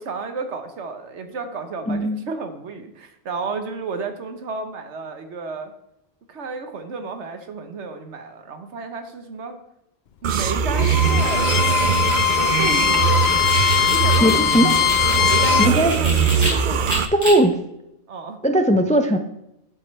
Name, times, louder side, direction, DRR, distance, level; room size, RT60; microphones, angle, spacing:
voice 1, 0.0-5.7 6.3-9.6 10.2-11.7 12.3-13.3 13.8-14.6 15.2-16.1 16.5-17.0 18.1-18.4, right 4 dB, 85° right, 7 dB, 1.4 m, -32 dB
sound 1, 10.2-17.1, right 7 dB, 55° right, 0.6 m, -21 dB
Bowed string instrument, 10.7-15.8, left 10 dB, 65° left, 0.8 m, -20 dB
sound 2, 11.1-16.5 16.9-17.3, equal, 35° right, 3.4 m, -31 dB
voice 2, 14.2-14.7 15.6-16.0 17.1-17.6 18.4-19.2, right 1 dB, 10° left, 7 dB, 0.4 m, -18 dB
11.5 x 7.7 x 3.3 m, 0.82 s
omnidirectional pair, 1.1 m